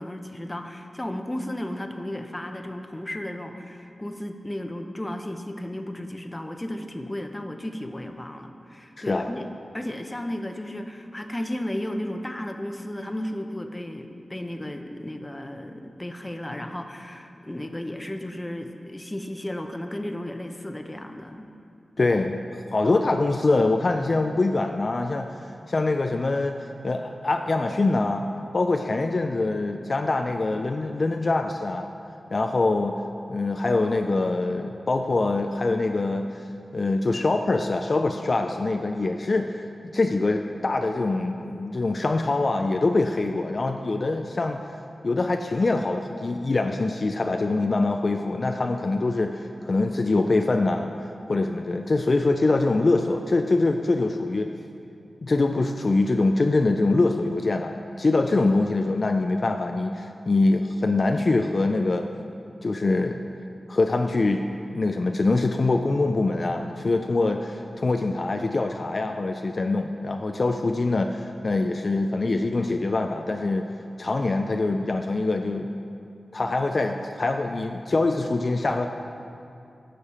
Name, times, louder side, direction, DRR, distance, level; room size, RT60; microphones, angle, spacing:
voice 1, 0.0-9.5 9.7-21.5, left 1 dB, 20° left, 6 dB, 0.7 m, -34 dB
voice 2, 9.0-9.3 22.0-22.4 22.7-25.3 25.7-26.6 26.8-28.3 28.5-31.9 32.3-33.0 33.3-36.3 36.7-39.6 39.9-44.6 45.0-50.9 51.3-54.5 55.2-62.0 62.6-63.2 63.7-64.4 64.7-73.6 74.0-75.7 76.3-78.9, left 2 dB, 50° left, 4 dB, 0.4 m, -24 dB
11.5 x 6.7 x 4.3 m, 2.6 s
cardioid pair, 60°, 0 cm